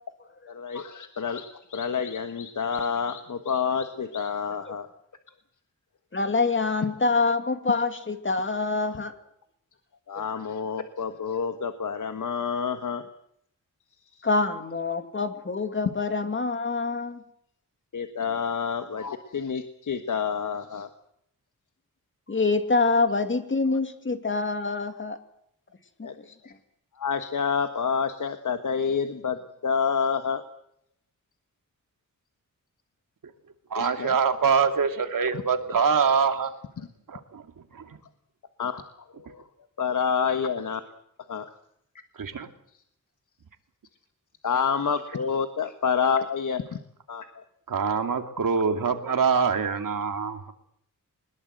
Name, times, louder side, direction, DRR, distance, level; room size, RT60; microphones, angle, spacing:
voice 1, 0.5-4.9 10.1-13.1 14.1-14.2 17.9-20.9 26.0-26.5 27.0-30.4 33.7-34.1 35.3-35.4 36.8-36.9 38.6-38.8 39.1-39.5 39.8-40.8 41.3-41.5 44.4-46.8 47.1-47.4, left 6 dB, 65° left, 8 dB, 1.6 m, -28 dB
voice 2, 6.1-9.1 14.2-17.2 22.3-25.2 26.0-26.1, left 3 dB, 35° left, 8 dB, 2.5 m, -25 dB
voice 3, 33.7-36.5 37.1-37.4 37.7-38.0 42.2-42.5 47.7-50.5, right 5 dB, 75° right, 6 dB, 2.5 m, -24 dB
22.0 x 21.0 x 8.0 m, 0.73 s
wide cardioid pair, 115°, 33 cm